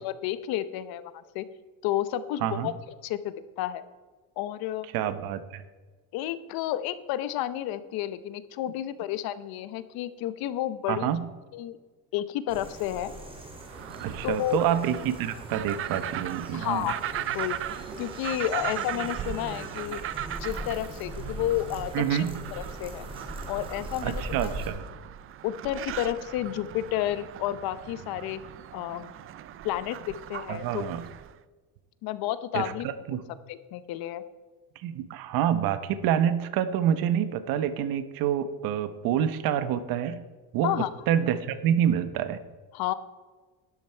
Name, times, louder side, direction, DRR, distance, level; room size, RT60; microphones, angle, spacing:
voice 1, 0.0-1.4 1.8-2.7 3.0-3.8 4.4-4.9 6.1-11.1 11.5-11.8 12.1-13.1 14.2-14.6 16.5-17.6 18.0-20.0 20.4-23.0 23.5-24.5 25.4-28.4 28.7-29.1 29.6-30.8 32.0-32.9 33.5-34.2 40.6-40.9 42.7-42.9, left 13 dB, 65° left, 14 dB, 0.9 m, -31 dB
voice 2, 2.4-2.7 4.9-5.6 10.9-11.3 14.0-16.9 21.9-22.4 24.0-24.8 30.5-31.0 32.5-33.2 34.8-40.2 40.5-40.8 41.1-42.4, right 9 dB, 60° right, 12 dB, 1.0 m, -27 dB
sound 1, 12.5-24.7, right 1 dB, 15° right, 2.5 m, -40 dB
sound 2, 13.6-31.3, right 11 dB, 35° right, 0.4 m, -38 dB
12.0 x 11.0 x 4.5 m, 1.4 s
cardioid pair, 145°, 39 cm